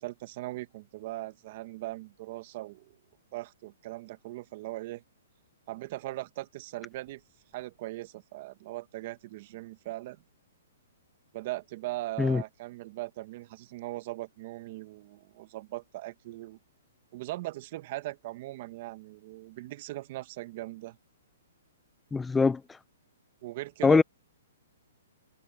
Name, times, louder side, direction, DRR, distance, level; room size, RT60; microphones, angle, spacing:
voice 1, 0.0-2.9 3.3-5.0 5.7-7.2 7.5-10.2 11.3-16.6 17.1-21.0 23.4-24.0, right 17 dB, 40° right, 1.3 m, -39 dB
voice 2, 22.1-22.6 23.8-24.0, left 4 dB, 5° left, 0.4 m, -22 dB
hypercardioid pair, 155°, 0 cm